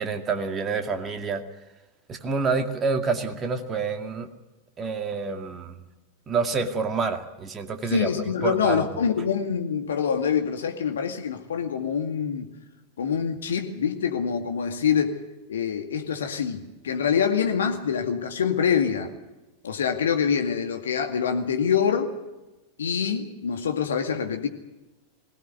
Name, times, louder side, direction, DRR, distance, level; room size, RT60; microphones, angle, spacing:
voice 1, 0.0-1.4 2.1-4.3 4.8-5.8 6.3-8.1 8.4-8.8, right 4 dB, 25° right, 6 dB, 2.3 m, -27 dB
voice 2, 7.9-12.5 13.0-15.2 15.5-19.1 19.6-22.1 22.8-24.5, left 7 dB, 65° left, 5 dB, 2.2 m, -25 dB
21.5 x 17.5 x 9.4 m, 1.0 s
figure-of-eight pair, 90°, 0 cm